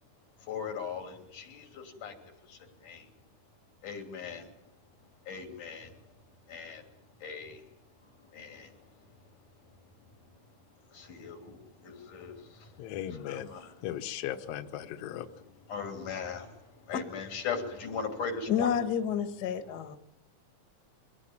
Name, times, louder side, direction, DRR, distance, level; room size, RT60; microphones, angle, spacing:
voice 1, 0.4-2.2 2.5-3.1 3.8-4.5 5.3-5.9 6.5-6.8 7.2-7.6 8.3-8.8 10.9-12.8 13.1-13.8 15.7-18.7, left 5 dB, 90° left, 4 dB, 4.5 m, -39 dB
voice 2, 12.8-13.5 13.8-15.3, left 11 dB, 65° left, 6 dB, 1.9 m, -37 dB
voice 3, 18.5-20.0, left 8 dB, 45° left, 8 dB, 1.4 m, -29 dB
23.5 x 16.0 x 8.9 m, 0.84 s
omnidirectional pair, 3.5 m